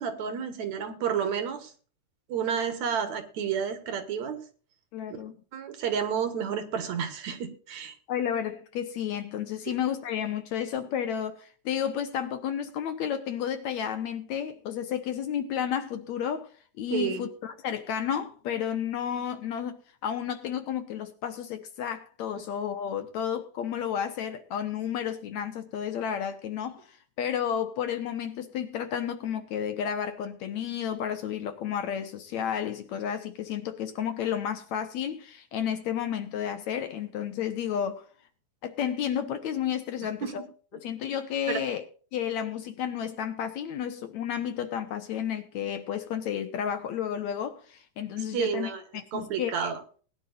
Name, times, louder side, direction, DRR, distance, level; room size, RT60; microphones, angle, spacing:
voice 1, 0.0-1.7 2.3-4.4 5.5-7.9 16.9-17.2 40.2-40.3 41.5-41.6 48.3-48.8 49.1-49.8, right 7 dB, 60° right, 2.6 m, -30 dB
voice 2, 4.9-5.3 8.1-16.5 16.8-38.0 38.6-40.5 40.7-41.8 42.1-49.7, left 9 dB, 65° left, 2.1 m, -32 dB
20.5 x 10.5 x 2.5 m
omnidirectional pair, 3.8 m